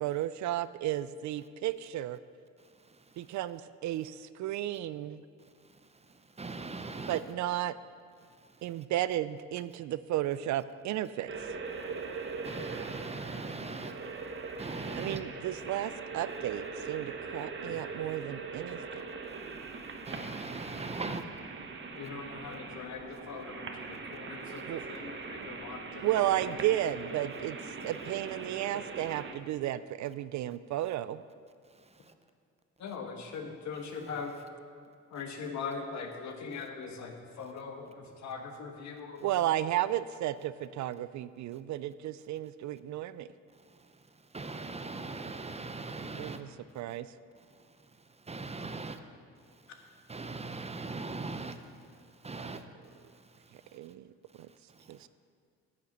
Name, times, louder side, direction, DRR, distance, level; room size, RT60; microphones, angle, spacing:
voice 1, 0.0-2.2 3.2-5.2 7.1-7.7 8.6-11.3 15.0-18.8 24.7-24.8 26.0-27.6 27.8-31.2 39.2-43.3 46.2-46.5 46.8-47.1 52.4-52.5 53.7-54.0 54.4-54.5 54.9-55.1, right 13 dB, 70° right, 15 dB, 0.4 m, -33 dB
voice 2, 2.6-3.4 5.6-7.2 8.2-8.8 11.7-14.1 14.5-15.2 18.1-18.2 19.3-21.2 31.7-32.1 33.9-34.1 36.5-36.7 43.5-46.4 47.4-47.7 48.0-49.0 49.5-52.6 52.9-53.8 54.3-55.1, right 3 dB, 20° right, 9 dB, 0.7 m, -42 dB
sound 1, 11.3-29.3, right 4 dB, 40° right, 1.0 m, -41 dB
voice 3, 21.9-23.7 24.1-26.1 32.8-34.3 35.1-39.6, left 5 dB, 65° left, 4 dB, 1.4 m, -41 dB
9.5 x 6.7 x 7.3 m, 2.2 s
cardioid pair, 90°, 30 cm